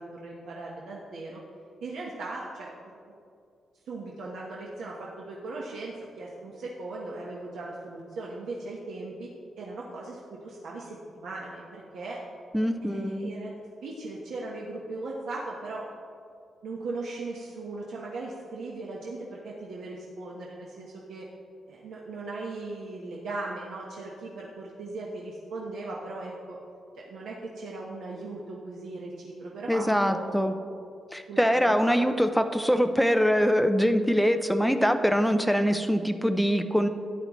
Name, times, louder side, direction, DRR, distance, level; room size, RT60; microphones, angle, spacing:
voice 1, 0.0-1.4 1.8-2.7 3.9-9.3 9.6-12.2 12.8-13.5 13.8-15.8 16.6-21.3 21.7-26.6 26.9-30.7 31.3-32.0, right 2 dB, 80° right, -4 dB, 1.1 m, -38 dB
voice 2, 12.5-13.3 29.7-30.5 31.1-36.9, equal, ahead, 7 dB, 0.4 m, -23 dB
13.0 x 9.3 x 3.1 m, 2.4 s
wide cardioid pair, 165°, 0 cm